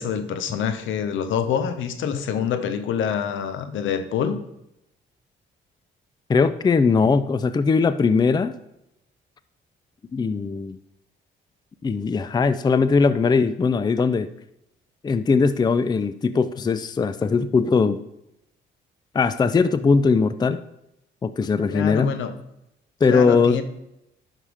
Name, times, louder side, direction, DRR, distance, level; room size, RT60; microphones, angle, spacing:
voice 1, 0.0-4.4 21.7-22.4 23.1-23.6, left 7 dB, 80° left, 0.9 m, -26 dB
voice 2, 6.3-8.5 10.1-10.8 11.8-14.3 15.0-18.0 19.1-20.6 21.2-22.2 23.0-23.6, left 4 dB, 20° left, 0.4 m, -20 dB
11.0 x 5.8 x 3.4 m
cardioid pair, 90°, 20 cm